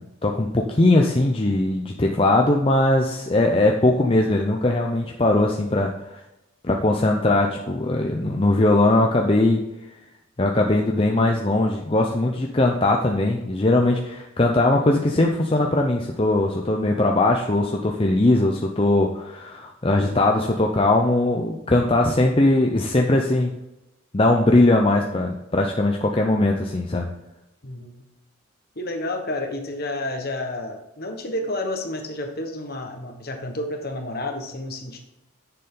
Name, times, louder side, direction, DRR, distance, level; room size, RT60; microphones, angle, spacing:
voice 1, 0.0-6.2 6.6-9.6 10.4-23.5 24.1-27.1, left 2 dB, 25° left, 1 dB, 0.6 m, -20 dB
voice 2, 27.6-28.0 28.7-35.0, left 1 dB, 45° left, 4 dB, 1.3 m, -30 dB
10.0 x 6.9 x 3.8 m, 0.93 s
head